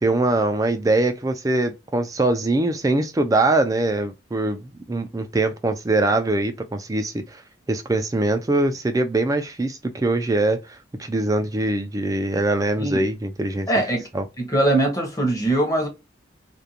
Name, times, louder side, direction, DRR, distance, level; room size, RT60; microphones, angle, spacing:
voice 1, 0.0-7.4 7.7-13.7 14.1-14.3, right 2 dB, 15° right, 0.3 m, -22 dB
voice 2, 13.7-14.0 14.4-15.9, right 1 dB, 20° left, 0.8 m, -21 dB
2.5 x 2.2 x 2.7 m
head